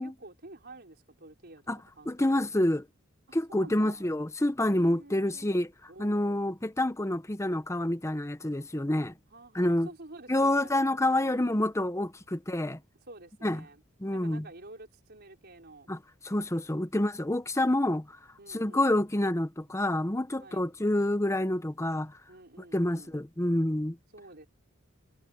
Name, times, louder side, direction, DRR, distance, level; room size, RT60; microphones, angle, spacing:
voice 1, 0.0-2.6 3.3-4.1 4.7-5.5 5.9-6.5 9.3-11.7 13.1-13.8 14.1-15.9 18.4-19.0 20.4-20.7 22.3-23.2 24.1-24.5, right 2 dB, 50° right, 5.0 m, -50 dB
voice 2, 2.1-2.8 3.3-5.7 6.0-9.1 9.5-9.9 10.3-12.8 13.4-13.6 14.0-14.5 15.9-16.0 16.2-18.2 18.5-22.2 22.7-24.0, left 1 dB, 15° left, 0.9 m, -28 dB
head